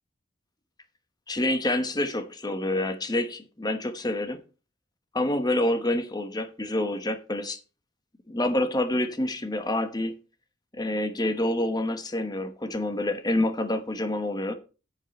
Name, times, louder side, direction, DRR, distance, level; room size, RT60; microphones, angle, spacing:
voice 1, 1.3-4.4 5.1-7.6 8.3-10.2 10.7-14.6, left 1 dB, 20° left, 1.1 m, -27 dB
9.5 x 8.2 x 4.4 m
head